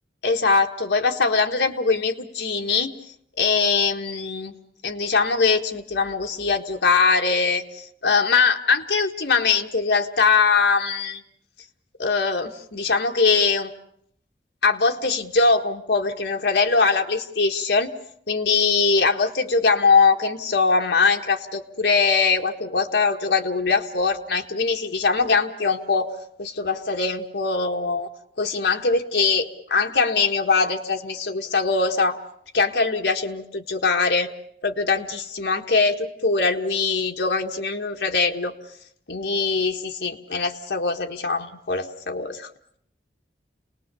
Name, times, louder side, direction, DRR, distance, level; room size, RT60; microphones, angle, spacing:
voice 1, 0.2-2.9 3.4-4.5 4.8-11.2 12.0-13.7 14.6-17.9 18.3-26.1 26.4-28.1 28.4-32.2 32.5-34.3 34.6-38.5 39.1-42.5, left 4 dB, 90° left, 3 dB, 1.6 m, -22 dB
29.0 x 19.5 x 7.0 m, 0.67 s
head